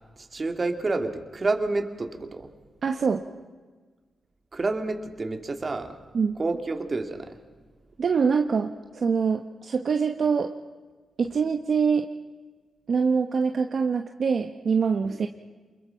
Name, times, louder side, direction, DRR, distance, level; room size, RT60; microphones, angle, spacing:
voice 1, 0.2-2.5 4.5-6.0 6.4-7.4, right 3 dB, 35° right, 6 dB, 2.6 m, -29 dB
voice 2, 2.8-3.2 6.1-6.4 8.0-10.5 11.2-12.1 12.9-15.3, right 5 dB, 60° right, 6 dB, 1.1 m, -24 dB
28.5 x 22.0 x 5.9 m, 1.4 s
cardioid pair, 70°, 0 cm